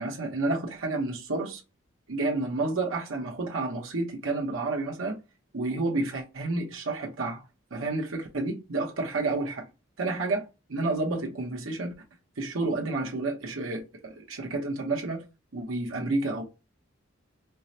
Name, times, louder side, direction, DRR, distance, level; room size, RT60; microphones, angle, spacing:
voice 1, 0.0-1.6 2.1-5.2 5.5-7.4 7.7-9.7 10.0-11.9 12.4-15.3 15.5-16.4, right 2 dB, 90° right, 0.9 m, -30 dB
4.5 x 2.1 x 2.7 m
head